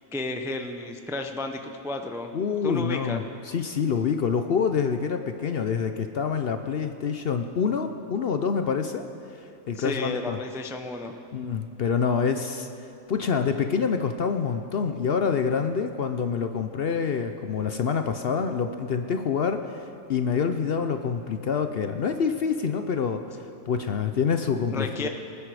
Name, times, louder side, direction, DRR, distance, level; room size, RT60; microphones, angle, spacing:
voice 1, 0.1-2.3 2.6-3.2 9.8-11.2 24.7-25.1, left 2 dB, 5° right, 5 dB, 0.4 m, -32 dB
voice 2, 2.3-9.0 9.7-10.4 11.3-12.7 13.1-23.2 23.7-25.1, left 6 dB, 55° left, 7 dB, 0.7 m, -26 dB
23.5 x 9.9 x 4.8 m, 2.7 s
omnidirectional pair, 1.4 m